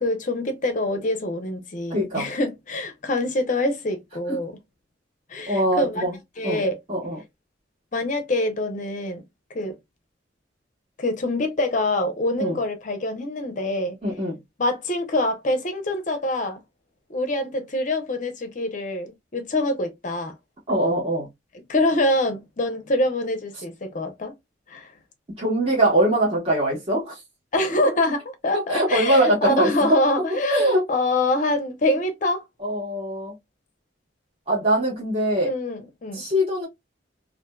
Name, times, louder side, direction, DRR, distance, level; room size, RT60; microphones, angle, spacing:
voice 1, 0.0-4.5 5.3-6.1 6.4-6.8 7.9-9.2 9.5-9.8 11.0-14.0 14.6-16.6 17.1-20.3 21.7-24.3 24.7-24.9 27.5-32.4 35.4-36.2, left 1 dB, 45° left, 0.6 m, -25 dB
voice 2, 1.9-2.3 5.5-6.2 6.4-6.6 6.9-7.2 12.4-12.6 14.0-14.4 20.7-21.3 25.4-27.2 28.5-29.7 30.5-30.8 32.6-33.3 34.5-35.5 36.1-36.7, right 1 dB, 30° right, 1.3 m, -22 dB
2.6 x 2.5 x 2.2 m
head